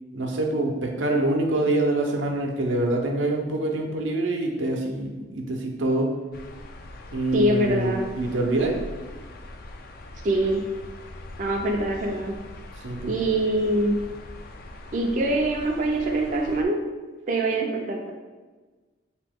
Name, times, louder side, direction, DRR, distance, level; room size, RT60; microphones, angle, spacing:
voice 1, 0.1-6.1 7.1-8.8 12.8-13.1, right 2 dB, 90° right, 1 dB, 0.7 m, -25 dB
sound 1, 6.3-16.6, left 1 dB, 50° left, 0.3 m, -42 dB
voice 2, 7.3-8.1 10.2-10.6 11.4-12.3 13.1-14.0 14.9-16.8 17.3-18.1, right 1 dB, 40° right, 1 dB, 0.4 m, -24 dB
3.7 x 2.9 x 3.4 m, 1.3 s
head